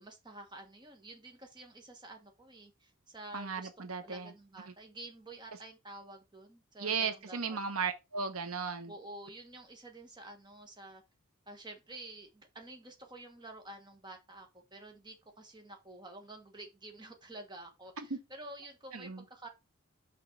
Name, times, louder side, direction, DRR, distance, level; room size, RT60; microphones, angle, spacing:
voice 1, 0.0-3.7 4.0-7.6 8.9-11.0 11.5-19.5, right 2 dB, 20° right, 1.4 m, -50 dB
voice 2, 3.3-4.3 6.8-8.9 18.0-18.2 18.9-19.2, right 5 dB, 80° right, 1.0 m, -36 dB
6.1 x 4.5 x 4.7 m
head